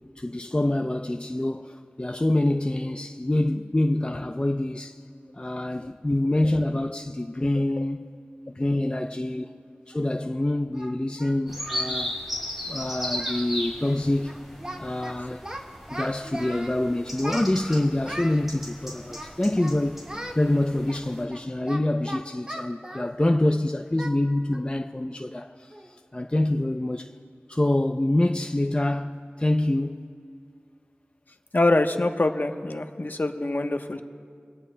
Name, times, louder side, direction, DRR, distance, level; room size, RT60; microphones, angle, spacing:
voice 1, 0.2-5.0 5.3-8.0 8.6-9.5 9.9-12.1 12.7-14.4 14.8-15.4 15.9-20.1 20.3-25.7 26.1-27.1 27.5-30.1, left 1 dB, 25° left, 0.5 m, -26 dB
Singing, 9.9-10.0 10.7-12.0 12.2-12.4 12.7-12.9 13.1-13.5 13.8-14.0 14.2-15.1 15.4-16.8 17.2-18.4 19.1-19.8 20.1-20.4 20.9-23.5 24.0-24.2 24.5-24.7 25.1-25.2 25.7-26.0, equal, 20° right, 1.5 m, -38 dB
sound 1, 11.5-21.2, left 1 dB, 5° right, 3.7 m, -36 dB
voice 2, 31.5-34.0, left 2 dB, 50° left, 1.0 m, -24 dB
27.0 x 18.0 x 2.2 m
wide cardioid pair, 55°, 4 cm